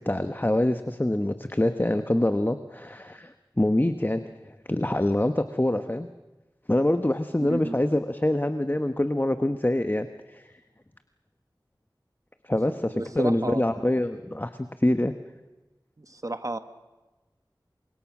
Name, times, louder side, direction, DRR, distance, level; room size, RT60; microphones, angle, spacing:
voice 1, 0.0-6.1 6.7-10.5 12.4-14.5 14.8-15.1, left 1 dB, 25° left, 9 dB, 1.1 m, -25 dB
voice 2, 7.4-7.8 12.9-13.7 16.0-16.6, right 2 dB, 45° right, 10 dB, 1.5 m, -32 dB
29.0 x 25.0 x 6.1 m, 1.1 s
wide cardioid pair, 50°, 8 cm